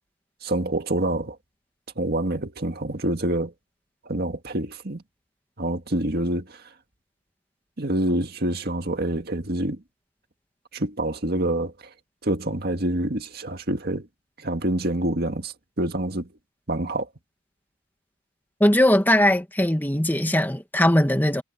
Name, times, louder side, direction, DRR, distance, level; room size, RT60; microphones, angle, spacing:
voice 1, 0.4-1.4 2.0-3.5 4.1-5.0 5.6-6.6 7.8-9.8 10.7-11.7 12.2-14.1 14.4-16.3 16.7-17.1, right 1 dB, 55° right, 1.9 m, -26 dB
voice 2, 18.6-21.4, left 1 dB, 10° left, 2.0 m, -20 dB
head